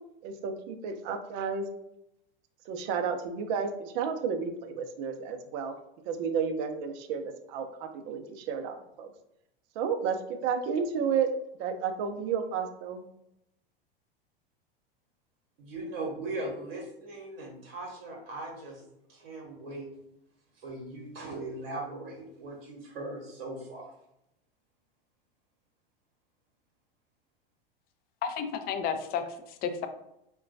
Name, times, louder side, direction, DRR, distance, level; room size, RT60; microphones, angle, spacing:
voice 1, 0.2-1.7 2.7-5.7 6.1-9.1 9.8-10.2 10.4-11.3 11.6-13.0, right 6 dB, 50° right, 7 dB, 0.5 m, -32 dB
voice 2, 15.6-18.8 19.1-19.9 20.6-23.9, right 2 dB, 70° right, -1 dB, 1.0 m, -39 dB
voice 3, 28.2-29.9, left 7 dB, 35° left, 8 dB, 0.4 m, -32 dB
3.7 x 2.2 x 2.5 m, 0.82 s
hypercardioid pair, 85°, 29 cm